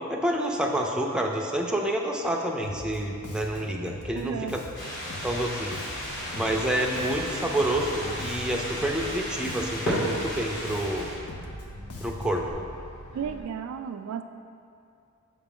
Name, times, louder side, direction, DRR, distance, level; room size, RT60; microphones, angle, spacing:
voice 1, 0.1-4.6 5.2-5.7 6.3-11.1 12.0-12.5, right 1 dB, 5° right, 0 dB, 0.4 m, -28 dB
Bass guitar, 2.6-12.5, left 1 dB, 85° left, 0.6 m, -42 dB
voice 2, 4.2-4.6 13.1-14.2, right 7 dB, 90° right, 12 dB, 0.3 m, -33 dB
sound 1, 4.7-11.2, equal, 55° left, 1.5 m, -34 dB
sound 2, 6.0-13.4, equal, 35° left, 1.0 m, -44 dB
5.8 x 4.4 x 3.7 m, 2.5 s
head